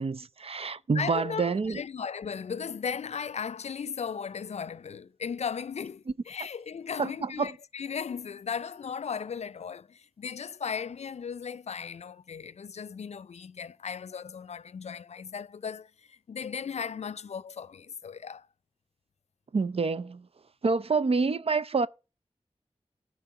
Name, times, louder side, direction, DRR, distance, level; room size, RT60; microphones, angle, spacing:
voice 1, 0.0-1.8 7.0-7.5 19.5-20.2 20.6-21.9, right 4 dB, 60° right, 0.5 m, -27 dB
voice 2, 0.9-18.5, left 6 dB, 80° left, 0.4 m, -36 dB
13.0 x 4.5 x 5.7 m
wide cardioid pair, 75°, 11 cm